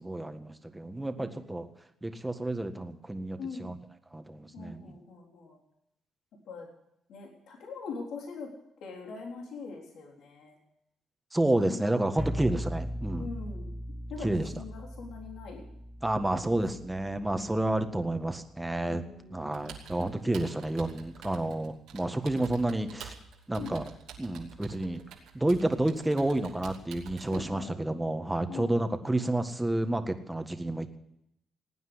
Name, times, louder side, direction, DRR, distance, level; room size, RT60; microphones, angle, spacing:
voice 1, 0.0-1.7 2.0-3.8 4.1-5.0 11.3-13.3 14.2-14.5 16.0-19.0 19.3-23.1 23.5-23.9 24.2-25.0 25.3-31.0, right 1 dB, 10° right, 7 dB, 1.6 m, -30 dB
voice 2, 1.2-1.5 3.4-3.7 4.5-5.6 6.5-6.7 7.1-8.5 8.8-10.6 11.5-12.5 13.2-13.8 14.1-15.6 16.3-16.6 17.2-17.5 18.8-19.5 23.6-23.8 27.3-27.7 28.5-28.9, left 4 dB, 75° left, 0 dB, 3.7 m, -42 dB
sound 1, 12.2-18.0, equal, 10° left, 0.8 m, -39 dB
Computer keyboard, 19.5-27.4, right 7 dB, 90° right, 2.8 m, -48 dB
18.5 x 9.5 x 8.0 m, 0.78 s
cardioid pair, 90°, 0 cm